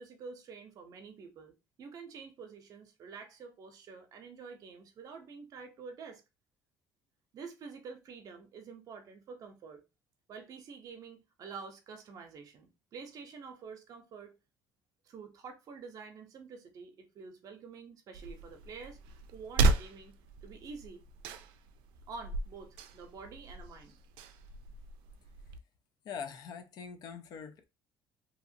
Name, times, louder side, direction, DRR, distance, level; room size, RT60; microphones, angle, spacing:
voice 1, 0.0-6.2 7.3-9.8 10.3-14.3 15.0-19.0 19.3-20.1 20.4-21.0 22.1-24.0, right 5 dB, 50° right, 0.7 m, -48 dB
sound 1, 18.1-25.6, right 3 dB, 90° right, 0.4 m, -35 dB
voice 2, 26.0-27.6, left 6 dB, 55° left, 0.5 m, -43 dB
2.8 x 2.4 x 2.7 m
cardioid pair, 130°, 8 cm